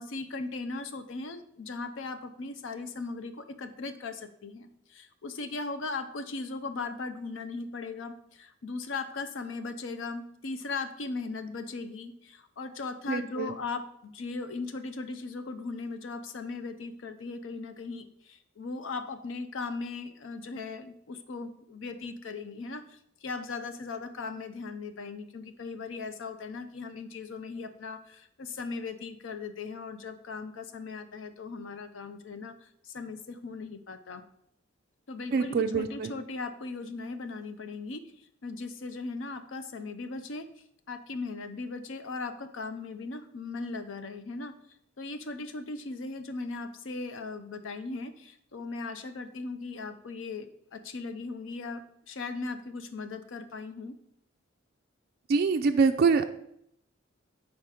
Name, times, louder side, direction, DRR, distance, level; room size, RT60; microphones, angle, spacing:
voice 1, 0.0-32.5 32.8-34.2 35.1-38.0 38.4-40.4 40.9-44.5 45.0-53.9, left 3 dB, 70° left, 10 dB, 0.6 m, -38 dB
voice 2, 13.1-13.5 35.3-36.1 55.3-56.2, right 5 dB, 50° right, 6 dB, 0.3 m, -25 dB
4.8 x 4.3 x 5.7 m, 0.73 s
head